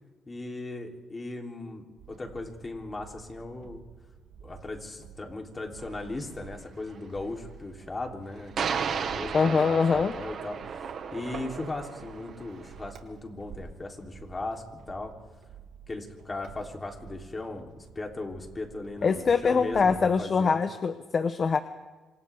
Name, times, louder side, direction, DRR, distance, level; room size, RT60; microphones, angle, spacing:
voice 1, 0.3-3.8 4.4-10.6 11.1-15.1 15.9-20.6, left 2 dB, 25° left, 2 dB, 3.5 m, -38 dB
sound 1, 2.0-20.2, right 7 dB, 80° right, 2.6 m, -50 dB
sound 2, 5.8-5.9 8.6-12.9, right 6 dB, 60° right, 1.7 m, -34 dB
voice 2, 9.3-10.1 19.0-21.6, left 5 dB, 45° left, 10 dB, 1.0 m, -23 dB
27.0 x 26.0 x 3.6 m, 1.3 s
cardioid pair, 90°, 0 cm